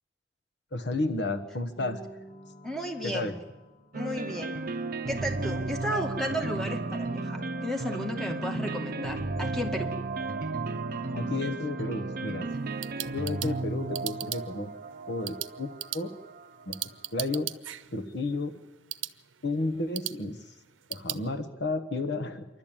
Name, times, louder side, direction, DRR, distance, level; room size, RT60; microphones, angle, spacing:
voice 1, 0.7-2.0 3.0-3.4 11.1-12.5 13.1-14.7 15.1-16.1 16.7-17.5 17.9-18.6 19.4-20.5 20.9-22.5, left 2 dB, 60° left, 10 dB, 1.2 m, -32 dB
sound 1, 1.8-4.2 4.8-9.7 9.9-14.9, left 1 dB, 40° left, 1.7 m, -47 dB
voice 2, 2.6-3.3 3.9-4.6 5.1-9.9, equal, ahead, 2 dB, 2.0 m, -34 dB
sound 2, 3.9-16.9, right 3 dB, 50° right, 0.7 m, -34 dB
sound 3, 12.5-21.2, right 14 dB, 85° right, 0.7 m, -40 dB
27.0 x 12.0 x 8.9 m, 1.1 s
head